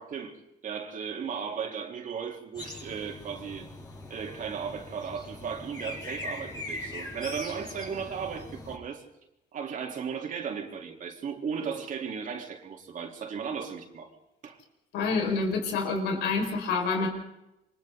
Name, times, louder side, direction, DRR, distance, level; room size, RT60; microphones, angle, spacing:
voice 1, 0.0-3.7 4.1-9.0 9.5-14.1 14.4-14.6, right 6 dB, 50° right, 2 dB, 3.8 m, -36 dB
sound 1, 2.6-8.8, left 2 dB, 25° left, 7.3 m, -41 dB
voice 2, 14.9-17.1, left 4 dB, 85° left, 2 dB, 5.7 m, -27 dB
28.5 x 24.0 x 4.0 m, 0.89 s
cardioid pair, 110°, 17 cm